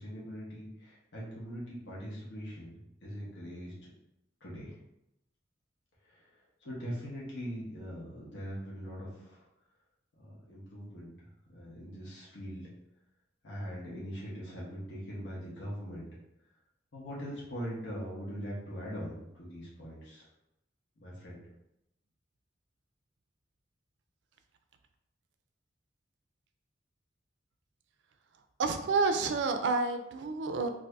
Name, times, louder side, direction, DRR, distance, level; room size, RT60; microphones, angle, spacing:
voice 1, 0.0-2.7 3.0-3.9 4.4-4.8 6.0-9.5 10.2-12.7 13.4-16.1 16.9-20.2 21.0-21.4, equal, 85° left, -6 dB, 0.9 m, -42 dB
voice 2, 28.6-30.7, right 4 dB, 85° right, 7 dB, 0.4 m, -29 dB
2.7 x 2.5 x 3.3 m, 0.83 s
head